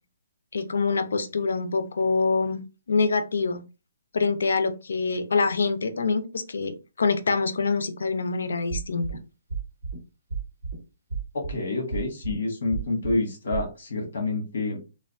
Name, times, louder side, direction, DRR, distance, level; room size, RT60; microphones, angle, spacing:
voice 1, 0.5-2.6 2.9-3.6 4.1-9.1, left 4 dB, 80° left, 10 dB, 0.5 m, -25 dB
sound 1, 8.7-9.2 9.5-10.0 10.3-10.8 11.1-11.6 11.9-12.4 12.7-13.2 13.5-13.6, right 5 dB, 50° right, 1.0 m, -31 dB
voice 2, 11.3-14.8, left 2 dB, 55° left, 2 dB, 1.3 m, -28 dB
3.3 x 2.2 x 2.5 m, 0.29 s
hypercardioid pair, 180°, 0 cm